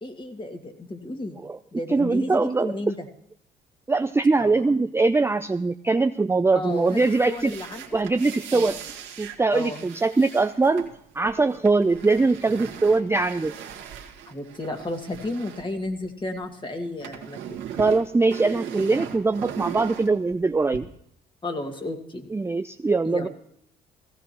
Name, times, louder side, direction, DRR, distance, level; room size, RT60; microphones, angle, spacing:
voice 1, 0.0-1.4 1.7-3.1 4.4-4.7 6.5-7.8 8.5-8.9 9.5-9.9 14.2-17.7 21.4-22.3 23.0-23.3, left 2 dB, 25° left, 4 dB, 2.2 m, -33 dB
voice 2, 1.9-2.7 3.9-7.5 7.9-8.8 9.2-13.5 17.8-20.9 22.3-23.3, right 3 dB, 10° right, 10 dB, 0.4 m, -22 dB
sound 1, 6.7-16.5 16.7-20.8, right 9 dB, 70° right, 1.8 m, -39 dB
16.5 x 15.5 x 3.0 m, 0.72 s
supercardioid pair, 60°, 21 cm